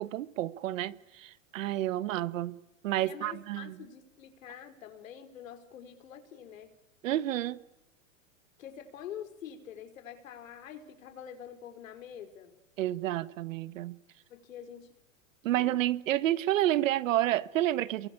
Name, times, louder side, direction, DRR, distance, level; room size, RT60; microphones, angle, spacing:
voice 1, 0.0-2.6 2.8-3.8 7.0-7.6 12.8-14.0 15.4-18.1, right 14 dB, 75° right, 1.5 m, -30 dB
voice 2, 3.0-6.7 8.6-12.6 14.3-14.9 15.5-15.8, left 9 dB, 80° left, 5.2 m, -46 dB
29.5 x 23.0 x 8.7 m
supercardioid pair, 140°, 39 cm